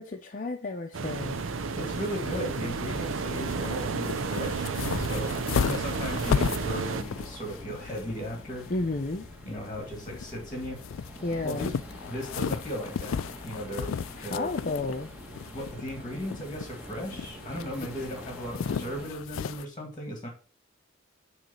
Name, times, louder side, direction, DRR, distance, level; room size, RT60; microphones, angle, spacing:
voice 1, 0.0-1.4 8.7-9.3 11.2-11.7 14.2-15.1, left 2 dB, 45° left, 0.6 m, -32 dB
sound 1, 0.9-7.0, right 4 dB, 85° right, 0.6 m, -32 dB
sound 2, 1.1-19.6, left 6 dB, 85° left, 0.4 m, -35 dB
sound 3, 1.2-19.1, equal, 5° right, 1.4 m, -45 dB
voice 2, 1.7-5.3 5.6-8.7 9.5-10.8 11.4-11.7 12.1-13.2 13.4-13.9 14.2-14.5 15.5-20.3, equal, 20° left, 1.7 m, -36 dB
8.9 x 3.3 x 5.5 m
head